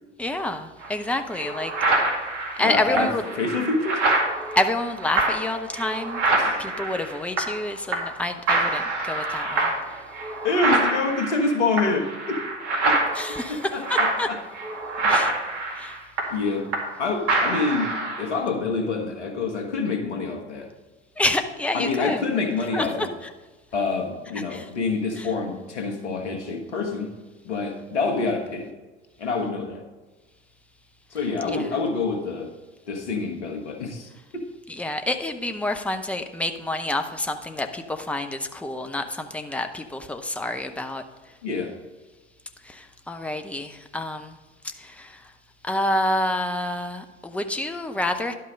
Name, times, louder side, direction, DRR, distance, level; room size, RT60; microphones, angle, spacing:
voice 1, 0.2-1.7 2.6-3.3 4.6-6.2 6.6-9.7 13.1-14.3 15.1-15.3 15.8-16.0 21.2-22.2 22.7-23.3 24.5-24.7 25.2-25.3 31.4-31.7 34.7-41.0 42.6-44.4 44.6-45.2 45.6-48.3, left 1 dB, 5° left, 7 dB, 0.7 m, -28 dB
sound 1, 0.8-0.9 1.3-7.7 7.9-8.2 8.5-17.0 17.3-18.3, right 2 dB, 50° right, 2.2 m, -26 dB
voice 2, 2.6-3.1 3.4-4.0 6.3-6.7 10.4-12.4 12.9-13.0 13.5-14.4 15.0-15.1 16.3-16.7 17.0-17.9 18.2-20.7 21.7-23.1 23.7-27.1 27.5-28.7 29.2-29.8 31.1-32.5 32.9-34.4 41.4-41.7, left 3 dB, 75° left, 3 dB, 1.6 m, -27 dB
11.0 x 5.6 x 5.2 m, 1.2 s
figure-of-eight pair, 75°, 35 cm